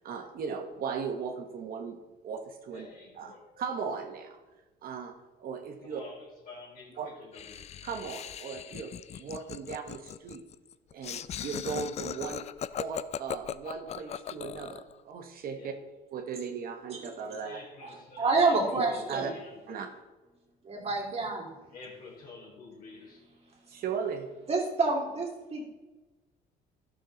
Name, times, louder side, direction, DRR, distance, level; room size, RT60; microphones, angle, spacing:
voice 1, 0.0-2.0 2.2-2.9 3.1-4.4 4.8-6.0 7.0-7.1 7.8-10.4 10.9-12.5 12.8-15.7 16.1-17.6 18.8-18.9 19.1-19.3 19.7-19.9 23.7-24.3, right 6 dB, 60° right, 4 dB, 1.1 m, -37 dB
voice 2, 2.7-3.4 5.8-7.6 9.1-9.2 15.5-15.8 17.4-19.8 21.7-23.2, left 3 dB, 60° left, -1 dB, 3.6 m, -48 dB
Laughter, 7.3-14.9, left 9 dB, 40° left, 0.3 m, -39 dB
voice 3, 17.8-19.3 20.6-21.5 24.5-25.7, right 3 dB, 40° right, -1 dB, 2.4 m, -28 dB
12.0 x 6.5 x 3.9 m, 1.2 s
cardioid pair, 110°, 17 cm